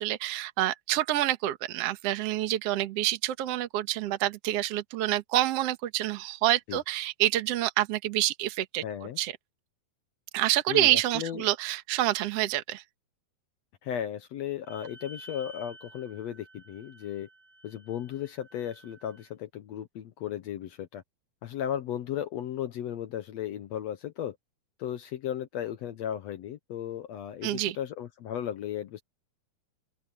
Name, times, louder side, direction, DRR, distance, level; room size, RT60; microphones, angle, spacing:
voice 1, 0.0-8.8 9.2-9.3 10.3-12.8 27.4-27.8, right 14 dB, 55° right, 1.9 m, -27 dB
voice 2, 8.8-9.2 10.7-11.5 13.8-17.3 17.6-21.0 21.4-24.4 24.8-29.0, left 10 dB, 75° left, 1.6 m, -35 dB
Wind instrument woodwind instrument, 14.6-19.3, right 1 dB, 5° left, 7.7 m, -52 dB
open air
omnidirectional pair, 4.1 m